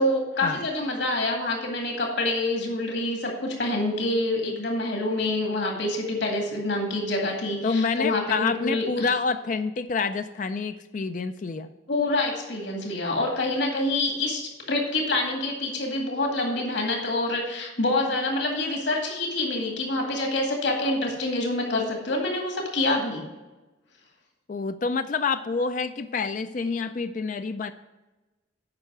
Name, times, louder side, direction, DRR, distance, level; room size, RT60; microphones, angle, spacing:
voice 1, 0.0-9.1 11.9-23.2, left 2 dB, 65° left, 0 dB, 2.1 m, -26 dB
voice 2, 7.6-11.7 24.5-27.7, left 4 dB, 40° left, 10 dB, 0.3 m, -27 dB
8.8 x 5.7 x 6.0 m, 1.1 s
head